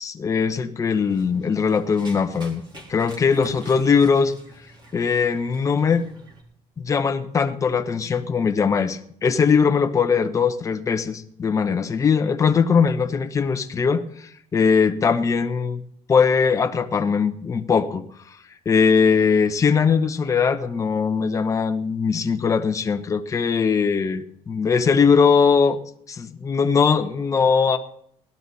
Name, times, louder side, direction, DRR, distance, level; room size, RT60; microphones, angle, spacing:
voice 1, 0.0-2.6 2.9-4.3 4.9-6.1 6.8-15.8 16.1-18.0 18.6-25.8 26.1-27.8, left 5 dB, 25° left, 7 dB, 1.0 m, -20 dB
Run, 0.9-6.4, right 1 dB, 35° right, 3.8 m, -45 dB
19.5 x 12.0 x 4.2 m, 0.67 s
cardioid pair, 155°, 13 cm